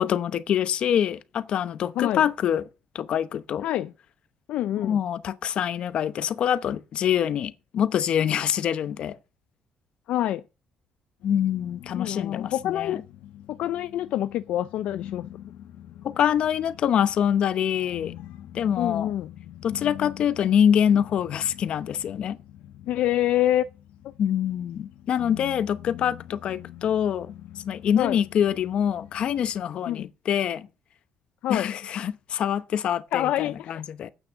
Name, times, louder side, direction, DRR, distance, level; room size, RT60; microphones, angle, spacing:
voice 1, 0.0-2.6 2.9-3.6 4.8-9.2 11.2-13.0 16.0-18.1 18.5-19.1 19.6-22.4 24.2-27.3 27.6-30.7 31.5-34.1, left 9 dB, 50° left, 0.8 m, -25 dB
voice 2, 3.6-3.9 4.5-5.0 10.1-10.4 11.9-13.0 13.5-15.3 18.8-19.3 22.9-23.6 27.9-28.2 29.9-30.1 31.4-31.7 33.1-33.8, left 13 dB, 70° left, 0.5 m, -26 dB
sound 1, 11.2-29.6, left 12 dB, 90° left, 1.1 m, -44 dB
8.9 x 6.3 x 6.9 m
cardioid pair, 145°, 2 cm